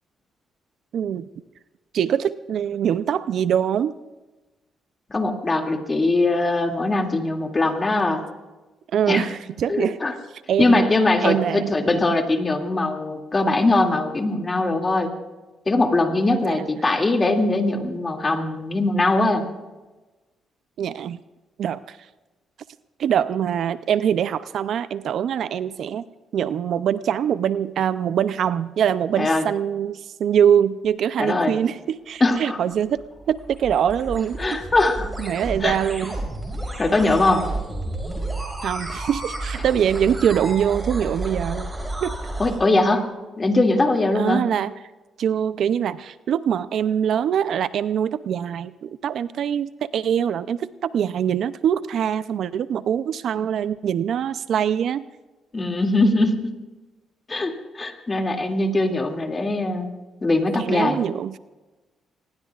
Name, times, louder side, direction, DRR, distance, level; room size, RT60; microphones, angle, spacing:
voice 1, 0.9-1.3 1.9-4.0 8.9-10.0 10.5-10.9 11.2-11.7 16.4-16.7 20.8-21.2 21.6-22.0 23.0-26.0 26.3-33.0 33.3-34.4 35.2-36.2 38.6-41.7 42.0-42.1 44.1-44.7 45.2-55.1 60.6-61.4, right 9 dB, 65° right, 14 dB, 0.5 m, -23 dB
voice 2, 5.1-8.2 9.1-9.3 9.7-10.1 10.6-15.1 15.7-19.5 29.2-29.4 31.2-31.5 32.2-32.6 34.4-35.1 35.6-35.8 36.8-37.4 42.4-43.0 43.4-44.5 55.5-56.5 57.3-59.9 60.2-61.0, left 2 dB, 25° left, 3 dB, 2.4 m, -21 dB
sound 1, 32.7-42.6, right 2 dB, 15° right, 4.9 m, -31 dB
24.5 x 20.0 x 2.4 m, 1.1 s
cardioid pair, 90°, 0 cm